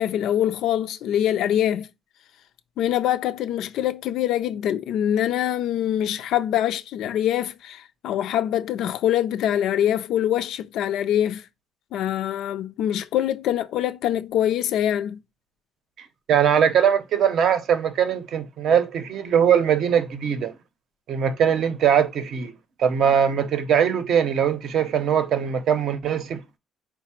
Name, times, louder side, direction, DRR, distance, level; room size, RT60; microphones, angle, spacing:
voice 1, 0.0-1.9 2.8-11.5 11.9-15.2, left 11 dB, 65° left, 0.3 m, -24 dB
voice 2, 16.3-20.5 21.1-22.5 22.8-26.4, right 8 dB, 50° right, 0.6 m, -21 dB
4.6 x 2.0 x 4.2 m
cardioid pair, 165°, 0 cm